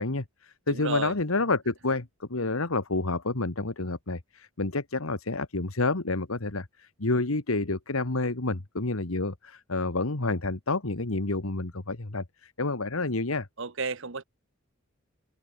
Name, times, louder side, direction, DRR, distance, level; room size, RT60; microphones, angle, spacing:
voice 1, 0.0-13.5, left 3 dB, 90° left, 1.7 m, -29 dB
voice 2, 0.7-1.1 13.6-14.2, right 4 dB, 65° right, 1.3 m, -32 dB
open air
head